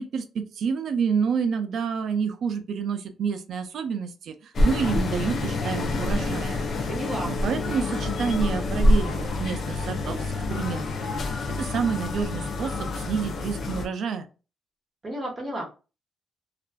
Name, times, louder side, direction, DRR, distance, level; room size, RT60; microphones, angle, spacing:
voice 1, 0.0-6.9 7.2-14.3, right 6 dB, 65° right, 9 dB, 0.4 m, -29 dB
sound 1, 4.5-13.9, left 2 dB, 50° left, 0.4 m, -27 dB
voice 2, 6.9-7.3 15.0-15.7, right 1 dB, 30° right, -2 dB, 0.9 m, -32 dB
2.4 x 2.3 x 2.2 m, 0.32 s
cardioid pair, 110°, 0 cm